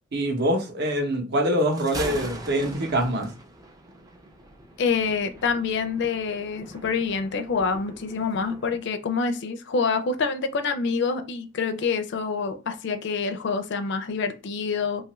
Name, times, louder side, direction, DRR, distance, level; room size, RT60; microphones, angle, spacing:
voice 1, 0.1-3.3, equal, 55° right, 0.7 m, -24 dB
Thunder, 1.6-8.8, right 1 dB, 20° right, 0.4 m, -41 dB
voice 2, 4.8-15.0, left 5 dB, 60° left, 0.4 m, -26 dB
2.9 x 2.4 x 2.9 m
head